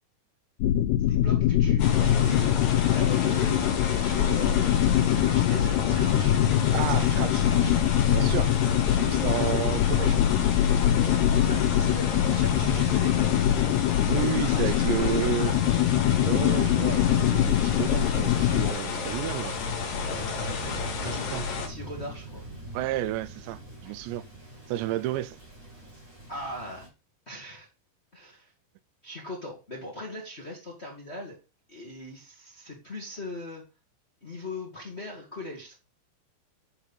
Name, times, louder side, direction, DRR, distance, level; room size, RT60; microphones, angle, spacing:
sound 1, 0.6-18.7, left 11 dB, 90° left, 2.8 m, -23 dB
voice 1, 1.1-4.8 5.2-6.4 6.8-7.7 11.4-13.1 14.5-15.6 20.1-22.4 26.3-26.9 27.2-27.7 28.1-28.5 29.0-31.4 31.7-33.6 34.2-35.7, left 1 dB, 45° left, 0.8 m, -40 dB
sound 2, 1.8-21.7, left 5 dB, 60° left, 3.1 m, -32 dB
voice 2, 6.7-7.4 8.1-8.5 8.9-10.3 12.6-12.8 14.1-15.5 16.2-19.6 21.0-21.5 22.7-24.2 24.7-25.4, right 14 dB, 85° right, 2.9 m, -31 dB
Thunder, 18.0-26.9, right 2 dB, 30° right, 1.6 m, -43 dB
9.8 x 4.5 x 5.4 m
omnidirectional pair, 4.9 m